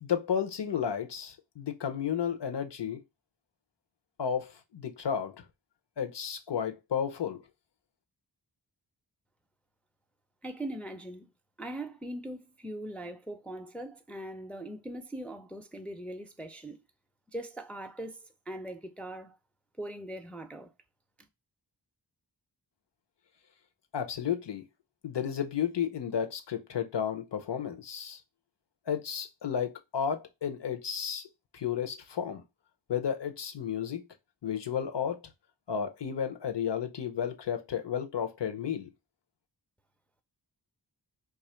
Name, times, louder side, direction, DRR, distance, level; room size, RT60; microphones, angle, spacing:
voice 1, 0.0-3.0 4.2-5.4 6.0-7.4 23.9-24.6 25.0-28.2 28.9-31.3 31.5-32.4 32.9-34.0 34.4-35.2 35.7-38.9, left 8 dB, 75° left, 0.7 m, -32 dB
voice 2, 10.4-11.3 11.6-16.8 17.3-19.4 19.8-20.7, right 1 dB, 5° left, 0.4 m, -41 dB
2.8 x 2.4 x 4.2 m
wide cardioid pair, 65°, 43 cm